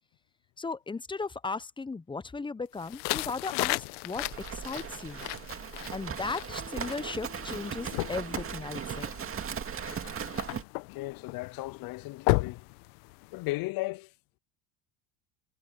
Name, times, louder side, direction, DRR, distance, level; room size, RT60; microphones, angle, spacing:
voice 1, 0.6-5.2 5.9-9.1, left 4 dB, 10° left, 0.8 m, -36 dB
sound 1, 2.8-13.5, left 23 dB, 75° left, 1.5 m, -35 dB
Livestock farm animals working animals, 4.2-10.6, right 7 dB, 30° right, 2.2 m, -38 dB
Keyboard (musical), 6.6-9.3, left 8 dB, 40° left, 5.3 m, -53 dB
voice 2, 10.9-12.6 13.3-14.1, left 20 dB, 55° left, 0.7 m, -35 dB
supercardioid pair, 95°, 41 cm